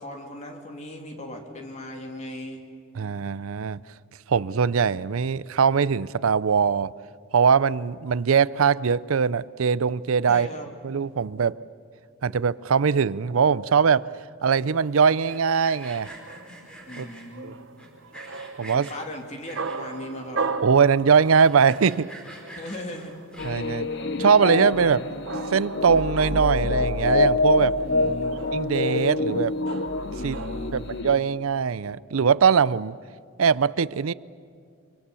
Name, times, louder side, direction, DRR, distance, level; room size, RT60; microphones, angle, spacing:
voice 1, 0.0-2.6 10.3-10.7 16.9-17.6 18.6-20.4 22.6-23.1 27.8-28.4 30.2-30.9, left 1 dB, 35° left, 3.0 m, -37 dB
voice 2, 3.0-3.8 4.3-6.9 7.3-10.5 10.8-11.6 12.2-14.0 14.4-16.1 17.0-17.1 17.4-17.5 18.6-18.9 20.6-22.1 23.4-23.9 24.2-25.0 25.5-27.7 28.5-29.5 30.2-30.4 30.7-33.0 33.4-34.1, right 6 dB, 90° right, 0.5 m, -21 dB
sound 1, 14.6-31.0, right 4 dB, 65° right, 0.9 m, -38 dB
Sawing, 15.1-17.3 17.8-19.0 19.4-20.0 20.5-20.6 20.8-20.9 21.3-23.8, right 1 dB, 5° left, 4.8 m, -44 dB
sound 2, 23.4-31.2, left 2 dB, 60° left, 1.0 m, -26 dB
25.0 x 25.0 x 7.0 m
head